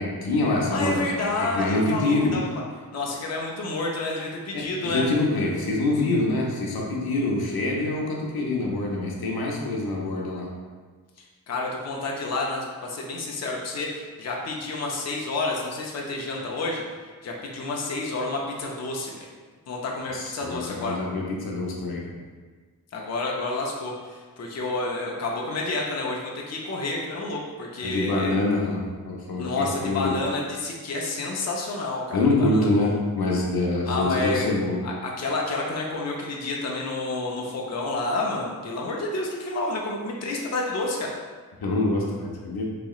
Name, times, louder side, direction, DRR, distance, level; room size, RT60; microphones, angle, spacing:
voice 1, 0.0-2.4 4.5-10.5 20.1-22.0 27.8-30.1 32.1-34.8 41.6-42.7, left 2 dB, 85° left, -2 dB, 0.6 m, -25 dB
voice 2, 0.7-2.5 2.9-5.1 11.5-16.8 17.2-19.1 19.7-21.0 22.9-28.3 29.3-32.9 33.8-34.5 34.8-41.1, left 2 dB, 45° left, -2 dB, 0.5 m, -29 dB
4.0 x 2.8 x 2.4 m, 1.5 s
wide cardioid pair, 120°, 36 cm